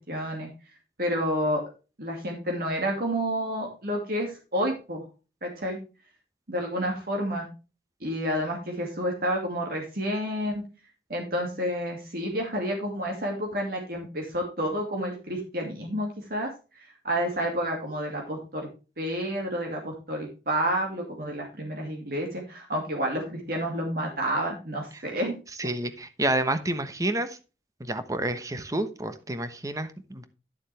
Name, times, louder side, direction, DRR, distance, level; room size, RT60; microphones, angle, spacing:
voice 1, 0.1-0.5 1.0-1.6 2.0-5.0 5.4-5.8 6.5-7.5 8.0-10.6 11.1-16.5 17.0-18.7 19.0-25.4, equal, 55° right, 1 dB, 2.4 m, -29 dB
voice 2, 25.6-27.4 27.8-30.2, right 1 dB, 20° right, 10 dB, 1.0 m, -29 dB
11.0 x 7.2 x 3.4 m, 0.32 s
head